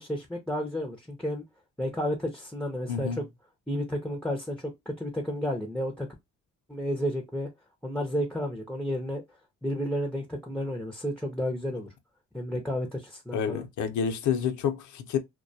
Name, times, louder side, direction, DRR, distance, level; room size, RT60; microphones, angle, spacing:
voice 1, 0.0-1.4 1.8-3.2 3.7-4.7 5.0-6.1 6.7-7.5 7.8-9.2 9.6-11.9 12.3-13.6, equal, 5° left, 0.5 m, -31 dB
voice 2, 2.9-3.2 13.3-15.2, left 7 dB, 75° left, 0.6 m, -29 dB
2.2 x 2.2 x 2.6 m
cardioid pair, 90°, 30 cm